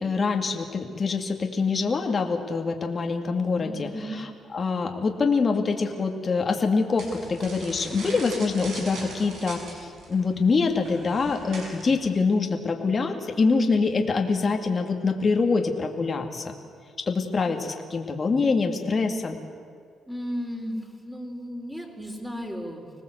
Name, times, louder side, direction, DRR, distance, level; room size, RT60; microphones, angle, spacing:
voice 1, 0.0-3.9 4.5-16.5 17.1-19.4, left 4 dB, 35° left, 3 dB, 2.3 m, -25 dB
voice 2, 3.6-4.2 7.9-8.2 20.1-22.9, equal, 5° right, 2 dB, 4.6 m, -35 dB
sound 1, 7.0-12.1, right 3 dB, 75° right, 6.8 m, -41 dB
25.5 x 19.0 x 8.1 m, 2.1 s
cardioid pair, 90°, 0 cm